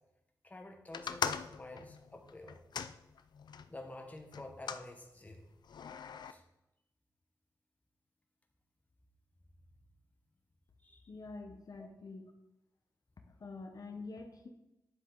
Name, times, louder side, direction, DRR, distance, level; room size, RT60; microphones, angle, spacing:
voice 1, 0.4-2.6 3.7-5.5 6.3-6.4 10.8-11.1 11.8-11.9, left 2 dB, 20° left, 3 dB, 1.2 m, -49 dB
sound 1, 0.9-3.7 4.3-4.9 5.7-6.3, left 7 dB, 90° left, 0.4 m, -40 dB
voice 2, 11.1-12.3 13.3-14.5, left 3 dB, 60° left, 4 dB, 1.0 m, -47 dB
10.0 x 7.5 x 3.9 m, 0.91 s
wide cardioid pair, 105°, 7 cm